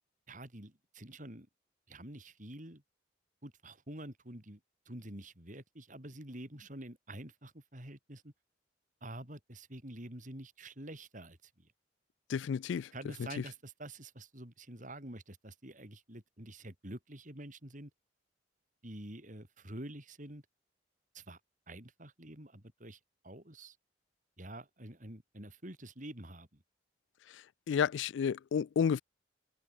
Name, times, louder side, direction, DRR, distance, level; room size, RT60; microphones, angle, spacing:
voice 1, 0.3-1.5 1.9-2.8 3.4-4.6 4.8-8.3 9.0-11.7 12.9-17.9 18.8-20.4 21.1-21.4 21.7-23.8 24.4-26.6, right 1 dB, 45° right, 4.8 m, -48 dB
voice 2, 12.3-12.9 27.7-29.0, left 7 dB, 80° left, 0.3 m, -31 dB
open air
head